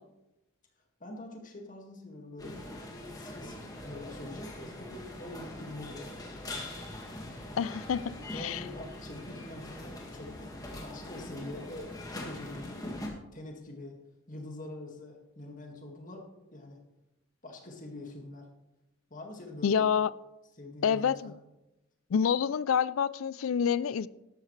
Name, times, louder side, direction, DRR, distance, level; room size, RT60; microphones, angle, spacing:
voice 1, 1.0-2.6 3.1-6.0 8.0-12.9 13.3-14.0 14.3-16.8 17.4-18.5 19.1-19.9 20.6-21.3, left 2 dB, 40° left, 2.0 m, -45 dB
sound 1, 2.4-13.1, left 1 dB, 15° left, 1.9 m, -42 dB
voice 2, 7.6-8.6 19.6-20.1 20.8-21.3 22.1-24.1, left 7 dB, 75° left, 0.4 m, -27 dB
12.5 x 12.5 x 3.3 m
head